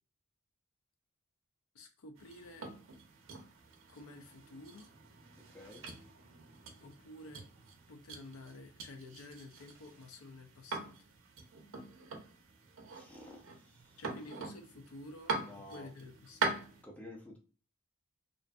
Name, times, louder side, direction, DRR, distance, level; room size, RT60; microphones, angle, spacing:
voice 1, 1.7-2.7 3.9-4.9 6.8-7.5 7.9-11.1 14.0-16.5, left 2 dB, 85° left, 5 dB, 0.5 m, -51 dB
sound 1, 2.2-16.8, right 3 dB, 65° right, 0.5 m, -43 dB
voice 2, 12.9-14.0 15.4-15.9 16.8-17.4, left 1 dB, 5° left, -1 dB, 0.6 m, -51 dB
2.5 x 2.5 x 2.2 m, 0.38 s
head